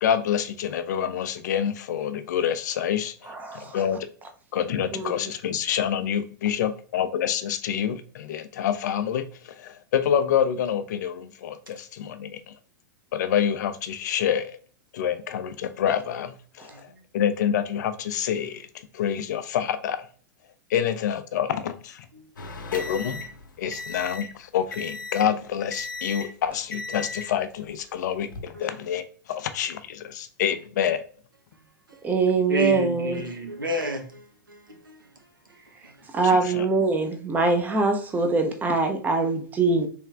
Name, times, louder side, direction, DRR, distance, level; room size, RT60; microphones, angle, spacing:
voice 1, 0.0-3.1 3.7-4.1 4.5-9.2 9.6-12.5 13.1-14.6 14.9-16.7 17.1-18.7 18.9-20.0 20.7-22.0 22.7-23.3 23.6-29.0 29.3-31.0 36.2-36.6, left 9 dB, 60° left, 10 dB, 0.5 m, -27 dB
voice 2, 3.3-3.8 4.9-5.2 5.5-5.6 32.0-33.2 36.1-39.9, right 3 dB, 15° right, 6 dB, 0.6 m, -23 dB
sound 1, 22.4-24.4 24.7-25.4 25.7-26.4 26.7-27.3 28.1-28.4, left 3 dB, 75° left, 0.8 m, -36 dB
voice 3, 32.5-35.0, equal, 90° right, 4 dB, 0.9 m, -30 dB
3.4 x 3.1 x 3.4 m, 0.43 s
figure-of-eight pair, 100°, 11 cm